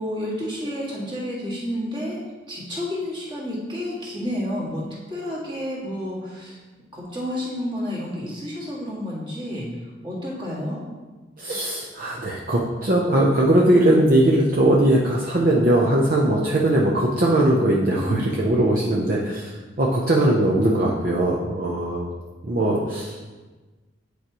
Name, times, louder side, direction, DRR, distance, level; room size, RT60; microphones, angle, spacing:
voice 1, 0.0-2.2 2.5-6.6 6.9-9.7 10.0-10.8 17.9-18.4, left 1 dB, 25° right, -6 dB, 1.8 m, -30 dB
voice 2, 11.4-22.1 22.4-23.2, right 1 dB, 50° right, -3 dB, 0.7 m, -20 dB
9.2 x 4.8 x 3.0 m, 1.3 s
head